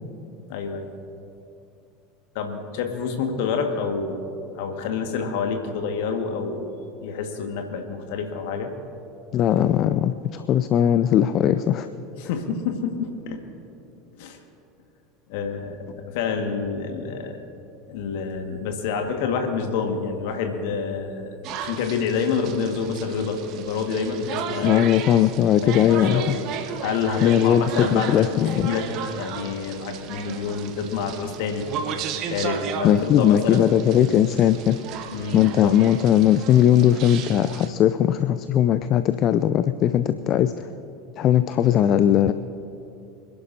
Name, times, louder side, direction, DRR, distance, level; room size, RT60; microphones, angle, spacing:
voice 1, 0.5-0.9 2.3-4.2 4.6-6.7 7.0-8.7 12.2-13.4 14.2-14.4 15.3-15.8 16.1-17.4 17.9-21.3 21.5-24.8 25.6-26.4 26.8-28.9 29.1-31.6 32.3-33.6 35.1-35.7 40.1-40.2, left 5 dB, 60° left, 4 dB, 1.8 m, -28 dB
voice 2, 9.3-11.9 24.6-26.3 27.2-28.7 32.8-34.8 35.3-40.7 41.2-42.3, left 10 dB, 45° left, 12 dB, 0.4 m, -19 dB
sound 1, 21.4-37.7, right 7 dB, 50° right, 1.0 m, -35 dB
26.5 x 11.0 x 2.8 m, 2.7 s
figure-of-eight pair, 75°, 0 cm